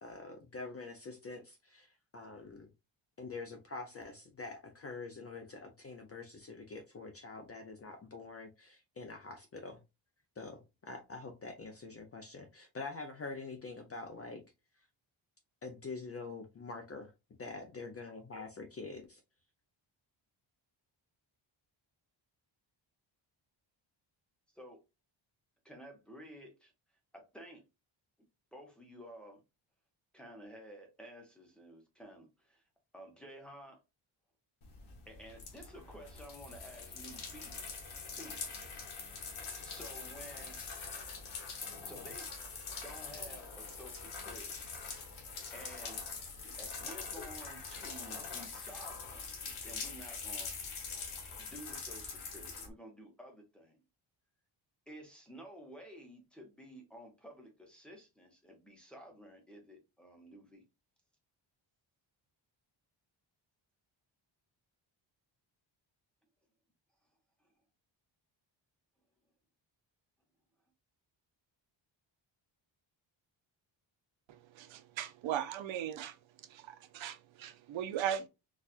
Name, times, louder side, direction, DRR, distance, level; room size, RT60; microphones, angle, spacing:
voice 1, 0.0-1.9 2.1-2.7 3.2-9.8 10.4-14.4 15.6-17.1 17.4-19.2, left 3 dB, 35° left, 0.4 m, -45 dB
voice 2, 25.6-26.7 27.1-27.6 28.5-29.4 30.1-32.6 32.9-33.8 35.1-37.6 38.1-38.4 39.3-40.6 41.8-42.3 42.8-44.5 45.5-46.0 46.6-49.3 49.6-50.5 51.4-53.8 54.9-60.6 67.4-67.5, equal, ahead, 0.8 m, -52 dB
sound 1, 34.6-52.7, left 5 dB, 80° left, 1.2 m, -44 dB
voice 3, 74.3-76.1 76.5-78.3, right 10 dB, 70° right, 0.6 m, -38 dB
4.1 x 2.3 x 2.4 m
wide cardioid pair, 175°, 48 cm